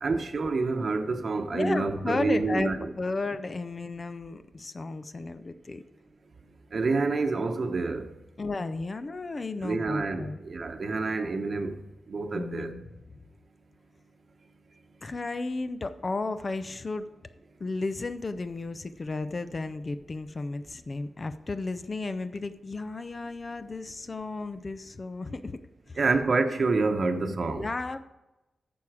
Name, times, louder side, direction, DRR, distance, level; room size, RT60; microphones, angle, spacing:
voice 1, 0.0-2.9 6.7-8.1 9.6-11.8 12.1-12.7 26.0-27.7, right 3 dB, 45° right, 1.0 m, -28 dB
voice 2, 1.5-5.8 8.4-10.4 12.3-12.8 15.0-17.1 17.6-25.6 25.9-26.0 27.5-28.0, left 3 dB, 35° left, 0.5 m, -33 dB
11.5 x 7.0 x 4.9 m
wide cardioid pair, 135°, 0 cm